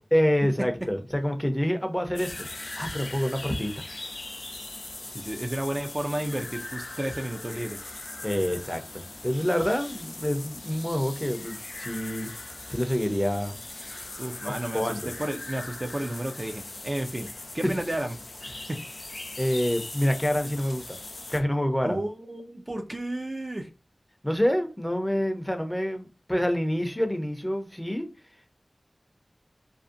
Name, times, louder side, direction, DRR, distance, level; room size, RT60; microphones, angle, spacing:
voice 1, 0.1-2.5 2.7-3.7 8.2-12.3 12.7-13.6 14.4-15.1 19.4-21.0 21.3-22.0 24.2-28.0, equal, 10° left, 0.6 m, -27 dB
sound 1, 2.2-21.4, left 2 dB, 70° left, 0.4 m, -40 dB
voice 2, 5.1-7.8 14.2-17.3 17.5-18.1 18.4-18.8 21.8-23.7, right 1 dB, 40° right, 0.4 m, -32 dB
2.6 x 2.1 x 2.5 m
wide cardioid pair, 45°, 0 cm